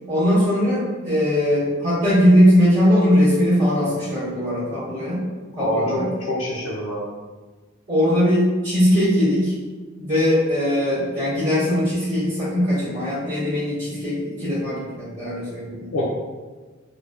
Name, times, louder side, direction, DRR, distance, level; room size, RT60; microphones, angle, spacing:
voice 1, 0.1-5.2 5.6-6.1 7.9-9.5 10.0-15.9, equal, 65° right, -13 dB, 1.3 m, -20 dB
voice 2, 5.5-6.0 6.3-7.0 15.9-16.0, left 1 dB, 80° left, -6 dB, 0.4 m, -25 dB
2.5 x 2.1 x 2.3 m, 1.3 s
head